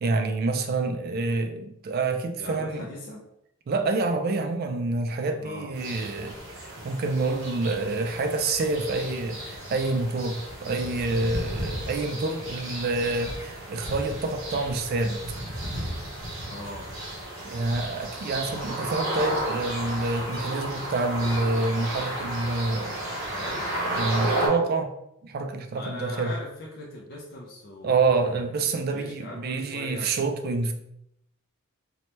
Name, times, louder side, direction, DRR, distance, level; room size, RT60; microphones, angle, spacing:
voice 1, 0.0-2.9 3.7-15.2 17.4-23.0 23.9-24.9 25.2-26.3 27.8-30.7, right 3 dB, 45° right, 6 dB, 0.3 m, -27 dB
voice 2, 2.3-3.2 5.4-5.7 16.4-16.9 23.1-23.7 25.7-28.5 28.9-30.1, left 2 dB, 45° left, -4 dB, 0.4 m, -40 dB
sound 1, 5.7-24.5, right 1 dB, 60° right, 0.8 m, -33 dB
2.8 x 2.1 x 3.0 m, 0.81 s
head